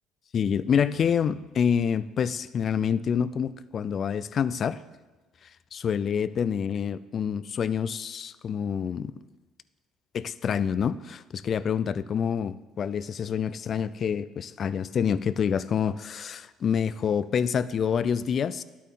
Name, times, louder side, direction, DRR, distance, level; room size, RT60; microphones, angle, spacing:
voice 1, 0.3-4.8 5.7-9.1 10.1-18.6, left 7 dB, 45° left, 16 dB, 0.4 m, -27 dB
11.0 x 8.4 x 3.8 m, 1.2 s
cardioid pair, 115°, 0 cm